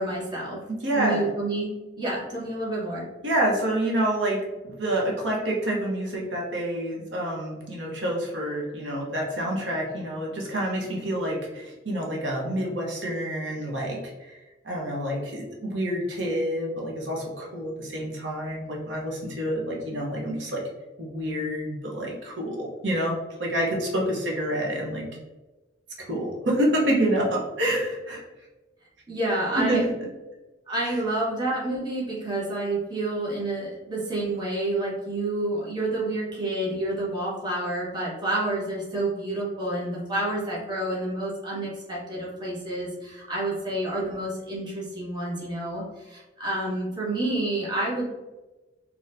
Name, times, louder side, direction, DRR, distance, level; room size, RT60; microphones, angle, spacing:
voice 1, 0.0-0.6 1.0-3.0 29.1-29.8 30.7-48.1, right 2 dB, 25° right, -6 dB, 1.2 m, -29 dB
voice 2, 0.7-1.2 3.2-20.6 21.0-25.0 26.0-28.2 29.5-29.9 30.8-31.0, right 1 dB, 90° right, -2 dB, 1.0 m, -28 dB
4.1 x 2.9 x 2.6 m, 1.1 s
head